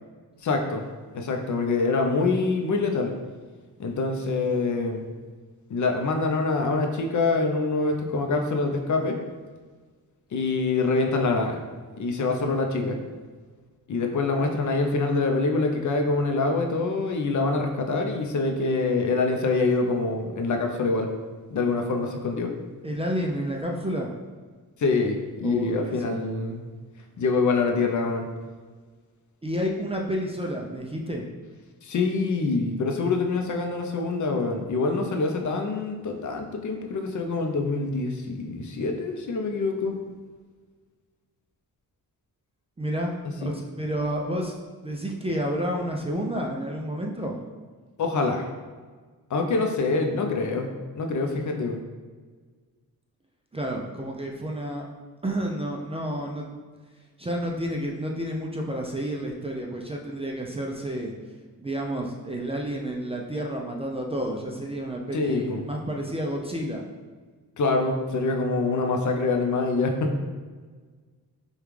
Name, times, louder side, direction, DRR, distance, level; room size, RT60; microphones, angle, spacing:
voice 1, 0.4-0.8 1.1-3.1 3.8-5.0 5.7-9.2 10.3-11.6 12.0-13.0 13.9-21.1 21.5-22.5 24.8-26.6 27.2-28.3 31.8-39.9 43.4-43.5 48.0-48.5 49.3-50.7 51.0-51.8 65.1-65.6 67.6-70.1, left 3 dB, 55° left, 3 dB, 0.6 m, -25 dB
voice 2, 22.8-24.1 25.4-26.2 29.4-31.2 42.8-43.1 43.4-47.4 53.5-54.9 55.2-56.5 57.2-61.1 61.6-66.8, equal, 15° right, -1 dB, 0.4 m, -30 dB
5.1 x 2.3 x 3.1 m, 1.5 s
cardioid pair, 95°, 36 cm